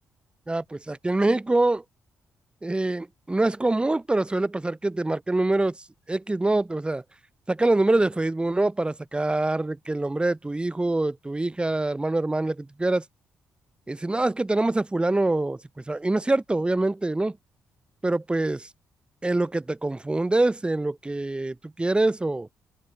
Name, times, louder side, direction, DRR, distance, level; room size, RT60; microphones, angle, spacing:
voice 1, 0.5-1.8 2.6-5.7 6.1-7.0 7.5-13.0 13.9-15.6 15.9-17.4 18.0-18.7 19.2-22.5, right 2 dB, 15° right, 0.7 m, -25 dB
figure-of-eight pair, 40°, 7 cm